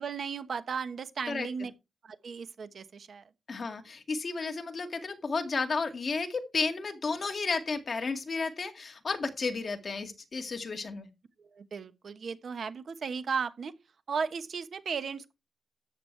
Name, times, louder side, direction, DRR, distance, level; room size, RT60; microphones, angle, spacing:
voice 1, 0.0-1.7 2.0-3.2 11.5-13.7 14.1-15.3, right 6 dB, 60° right, 1.1 m, -35 dB
voice 2, 3.5-11.1, left 4 dB, 40° left, 2.1 m, -32 dB
13.5 x 9.7 x 3.3 m
wide cardioid pair, 170°, 0 cm